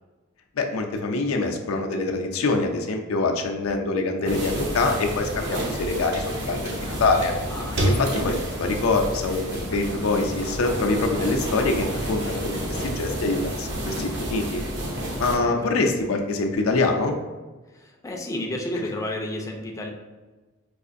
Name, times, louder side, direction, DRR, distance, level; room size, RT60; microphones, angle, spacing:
voice 1, 0.6-7.3 7.8-14.6 15.2-17.2, left 3 dB, 85° left, 3 dB, 0.5 m, -25 dB
sound 1, 4.3-15.4, right 1 dB, 60° right, 0.7 m, -29 dB
voice 2, 7.5-7.9 15.0-15.9 17.7-19.9, left 1 dB, 15° left, 0 dB, 0.4 m, -32 dB
4.7 x 2.4 x 2.5 m, 1.2 s
head